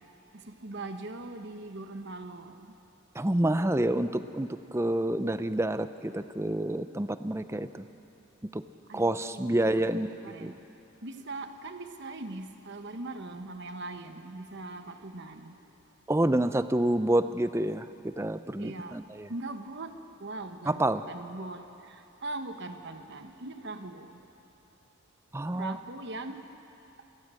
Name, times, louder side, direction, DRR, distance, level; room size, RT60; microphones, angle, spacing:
voice 1, 0.5-2.7 8.9-10.5 11.0-15.6 18.6-19.0 19.3-19.9 20.2-24.2 25.5-26.4, right 2 dB, 55° right, 7 dB, 1.2 m, -41 dB
voice 2, 3.1-7.9 8.5-8.6 8.9-10.5 16.1-17.9 18.2-19.3 20.7-21.0 25.3-25.8, right 1 dB, 15° right, 11 dB, 0.6 m, -28 dB
28.5 x 15.0 x 7.7 m, 2.9 s
head